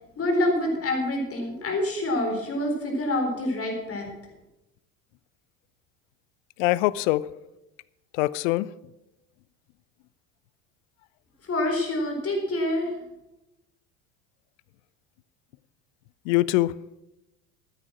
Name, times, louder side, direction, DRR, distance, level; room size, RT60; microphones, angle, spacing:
voice 1, 0.2-4.1 11.4-12.9, left 1 dB, 30° left, 4.2 m, -26 dB
voice 2, 6.6-7.2 8.2-8.7 16.3-16.7, left 18 dB, 55° left, 0.6 m, -23 dB
14.0 x 9.6 x 6.0 m
figure-of-eight pair, 70°, 46 cm